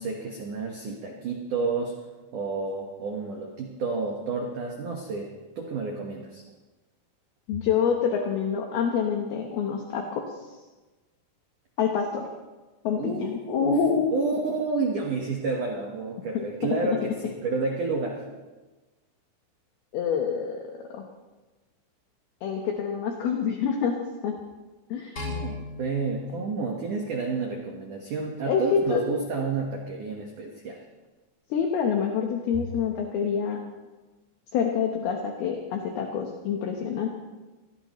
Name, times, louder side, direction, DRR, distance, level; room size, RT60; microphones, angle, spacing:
voice 1, 0.0-1.9 2.3-6.4 13.0-13.8 14.1-18.3 25.2-30.8, right 4 dB, 75° right, 0 dB, 1.9 m, -30 dB
voice 2, 7.5-10.2 11.8-12.3 12.8-14.2 16.3-17.0 19.9-20.6 20.9-21.1 22.4-24.0 24.2-24.4 24.9-25.3 28.5-29.0 31.5-33.6 34.5-37.1, left 6 dB, 75° left, 2 dB, 2.4 m, -26 dB
sound 1, 25.2-27.5, left 3 dB, 20° left, 6.2 m, -38 dB
24.0 x 17.0 x 3.2 m, 1.2 s
omnidirectional pair, 6.0 m